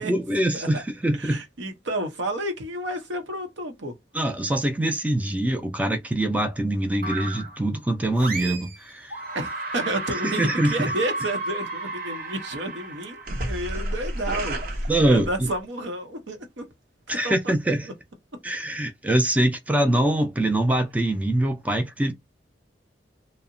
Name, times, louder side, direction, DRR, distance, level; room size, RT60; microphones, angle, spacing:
voice 1, 0.0-1.4 4.1-9.2 10.1-10.9 14.9-15.5 17.1-17.9 18.4-22.1, right 1 dB, 10° right, 0.3 m, -24 dB
voice 2, 1.2-3.9 9.3-16.7 17.2-17.5, right 1 dB, 85° right, 0.7 m, -31 dB
sound 1, 7.0-7.6 8.2-8.8 9.1-15.6, right 2 dB, 50° right, 0.6 m, -32 dB
2.7 x 2.0 x 2.5 m
head